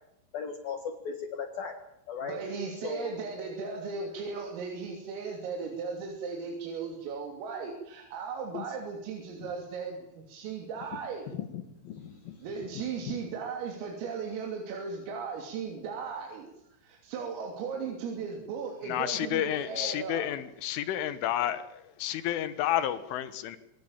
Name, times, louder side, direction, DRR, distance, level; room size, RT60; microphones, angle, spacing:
voice 1, 0.3-1.8 2.1-2.4 2.8-3.2 8.5-8.7 10.9-11.0 11.3-12.5 12.7-13.1, left 6 dB, 60° left, 7 dB, 2.9 m, -37 dB
voice 2, 2.2-11.3 12.4-20.3, right 5 dB, 85° right, 1 dB, 5.7 m, -37 dB
voice 3, 18.9-23.6, left 12 dB, 75° left, 13 dB, 3.8 m, -30 dB
24.5 x 19.0 x 7.3 m, 0.83 s
omnidirectional pair, 5.8 m